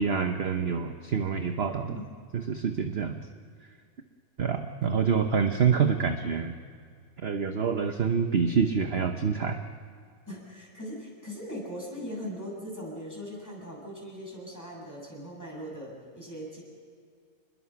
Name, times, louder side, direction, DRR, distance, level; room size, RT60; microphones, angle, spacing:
voice 1, 0.0-2.0 2.3-3.2 4.4-6.5 7.2-9.6, right 6 dB, 45° right, 6 dB, 1.1 m, -26 dB
voice 2, 10.3-16.6, equal, 10° left, -3 dB, 7.4 m, -40 dB
28.0 x 21.5 x 5.9 m, 2.2 s
omnidirectional pair, 1.6 m